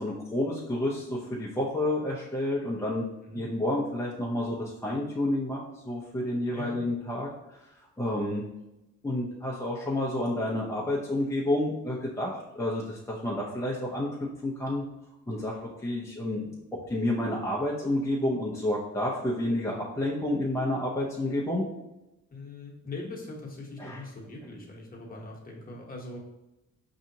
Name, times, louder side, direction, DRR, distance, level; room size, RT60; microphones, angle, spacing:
voice 1, 0.0-3.1 3.3-7.6 8.0-8.4 9.0-14.1 14.4-14.8 15.3-16.5 16.9-21.7 23.8-24.0, left 1 dB, 10° left, -5 dB, 0.6 m, -30 dB
voice 2, 6.5-6.8 22.3-26.2, left 2 dB, 30° left, -2 dB, 1.1 m, -41 dB
4.8 x 2.8 x 2.7 m, 0.94 s
cardioid pair, 90°, 30 cm